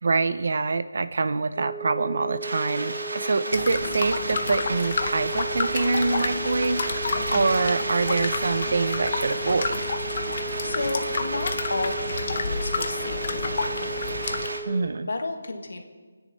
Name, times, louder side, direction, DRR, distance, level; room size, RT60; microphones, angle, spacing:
voice 1, 0.0-9.8 14.7-15.1, right 3 dB, 45° right, 13 dB, 0.6 m, -25 dB
sound 1, 1.6-14.8, right 4 dB, 25° right, 0.9 m, -36 dB
sound 2, 2.4-14.6, right 2 dB, 70° right, 2.0 m, -33 dB
sound 3, 3.5-14.5, left 4 dB, 30° left, 0.7 m, -31 dB
voice 2, 10.6-14.2 15.0-15.8, left 2 dB, 55° left, 5 dB, 1.6 m, -32 dB
26.0 x 9.9 x 4.1 m, 1.5 s
hypercardioid pair, 180°, 0 cm